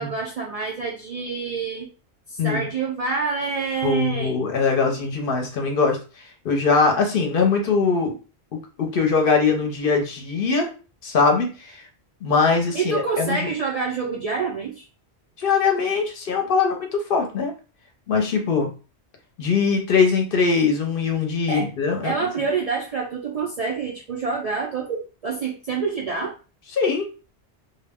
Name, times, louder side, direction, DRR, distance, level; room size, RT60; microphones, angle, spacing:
voice 1, 0.0-1.9 2.3-4.4 12.7-14.9 21.5-21.7 22.0-26.3, right 5 dB, 55° right, -2 dB, 0.4 m, -27 dB
voice 2, 3.8-6.0 6.4-8.2 8.8-10.7 11.0-11.8 12.2-13.5 15.4-17.5 18.1-18.7 19.4-22.1 26.7-27.0, left 5 dB, 60° left, 3 dB, 0.8 m, -21 dB
2.2 x 2.1 x 3.4 m, 0.34 s
omnidirectional pair, 1.1 m